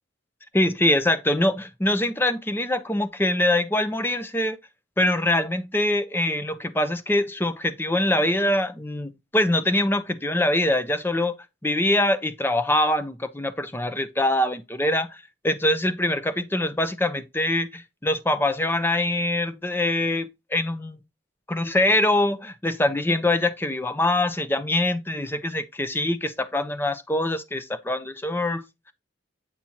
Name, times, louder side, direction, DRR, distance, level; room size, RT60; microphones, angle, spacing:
voice 1, 0.5-4.6 5.0-11.3 11.6-21.0 21.5-28.9, left 1 dB, 10° left, 0.6 m, -24 dB
8.4 x 4.2 x 2.8 m
head